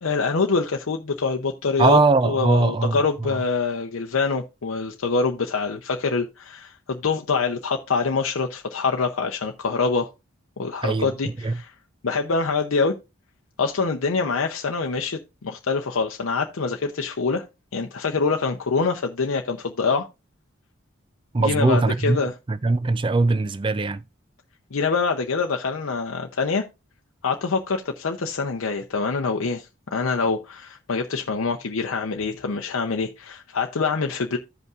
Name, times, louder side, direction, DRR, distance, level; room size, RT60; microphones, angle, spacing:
voice 1, 0.0-10.1 10.6-11.7 12.0-12.9 13.6-17.4 17.7-20.1 21.4-22.3 24.7-26.7 27.2-34.4, left 4 dB, 80° left, 0.7 m, -25 dB
voice 2, 1.8-3.4 10.8-11.6 21.3-22.2 22.5-24.0, right 3 dB, 25° right, 0.3 m, -21 dB
14.5 x 5.4 x 2.4 m
head